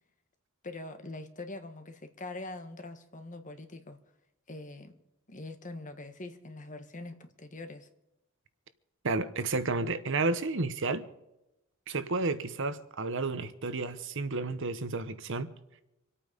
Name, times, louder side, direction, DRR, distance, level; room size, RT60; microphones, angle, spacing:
voice 1, 0.6-4.0 4.5-5.0 5.3-7.9, left 2 dB, 40° left, 1.6 m, -43 dB
voice 2, 9.0-11.1 11.9-15.5, right 3 dB, 65° right, 1.1 m, -31 dB
26.5 x 8.9 x 5.2 m
head